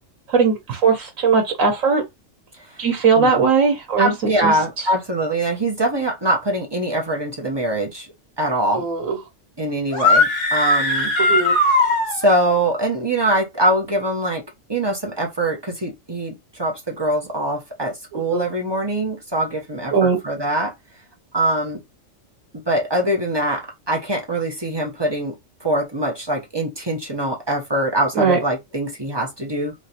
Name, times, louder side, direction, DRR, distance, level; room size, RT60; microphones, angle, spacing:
voice 1, 0.3-2.0 2.8-4.1 4.4-4.5 8.7-9.2 11.3-11.6 18.1-18.4 19.9-20.2 28.1-28.4, right 5 dB, 85° right, 1.3 m, -19 dB
voice 2, 3.2-3.5 4.0-8.1 8.4-8.8 9.6-11.1 12.1-14.4 14.7-20.7 21.3-21.8 22.7-29.7, right 1 dB, 25° right, 0.7 m, -23 dB
sound 1, 9.9-12.5, left 2 dB, 60° left, 1.3 m, -19 dB
3.2 x 2.9 x 2.8 m
omnidirectional pair, 1.3 m